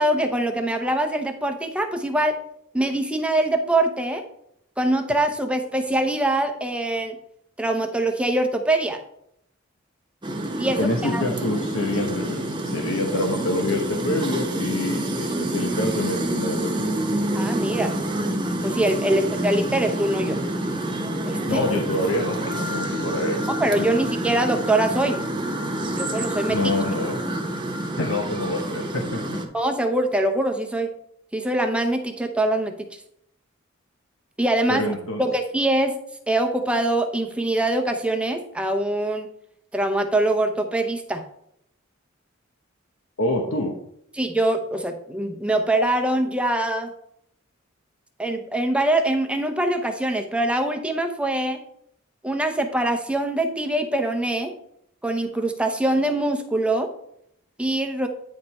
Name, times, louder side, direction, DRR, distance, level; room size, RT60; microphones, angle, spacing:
voice 1, 0.0-2.4 2.7-4.2 4.8-7.2 7.6-9.0 10.6-11.2 17.3-18.0 18.6-20.4 21.3-21.6 23.6-25.2 25.9-26.6 29.5-30.9 31.3-32.7 34.4-34.8 35.2-35.9 36.3-39.3 39.7-41.2 44.2-46.9 48.2-51.6 52.2-54.5 55.0-56.9 57.6-58.1, right 1 dB, 5° right, 4 dB, 0.7 m, -23 dB
sound 1, 10.2-29.4, right 1 dB, 25° right, 1.1 m, -27 dB
voice 2, 10.8-17.0 19.1-19.2 21.5-23.5 23.8-23.9 26.5-27.2 28.0-29.4 34.7-35.2 43.2-43.8, left 1 dB, 70° left, 1 dB, 1.0 m, -26 dB
9.6 x 5.0 x 4.3 m, 0.72 s
head